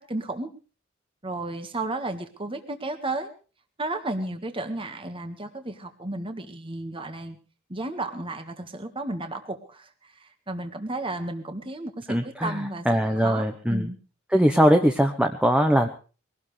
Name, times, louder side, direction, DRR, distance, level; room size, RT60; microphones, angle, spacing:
voice 1, 0.1-0.5 1.2-3.3 3.8-7.4 7.7-14.0, right 2 dB, 25° right, 7 dB, 1.7 m, -33 dB
voice 2, 12.1-12.5 12.9-13.9 14.3-15.9, equal, 5° right, 5 dB, 1.0 m, -21 dB
22.0 x 18.0 x 3.4 m, 0.37 s
head